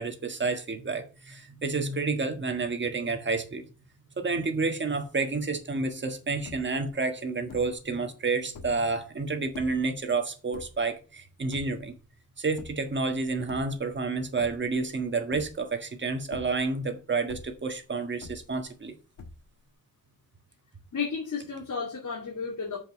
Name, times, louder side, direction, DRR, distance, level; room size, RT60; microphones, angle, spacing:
voice 1, 0.0-3.7 4.2-11.9 12.4-19.0, right 4 dB, 35° right, 1.5 m, -30 dB
sound 1, 6.4-6.9 7.5-7.9 8.4-8.9 9.5-9.9 10.5-11.1 11.5-12.0 12.6-13.0 13.4-14.1 14.4-14.9 15.3-15.8 16.2-16.9 17.3-17.8 18.2-18.8 19.2-19.7, left 4 dB, 85° left, 1.6 m, -45 dB
voice 2, 20.9-22.8, left 5 dB, 70° left, 2.5 m, -33 dB
7.1 x 5.3 x 6.4 m
wide cardioid pair, 175°, 32 cm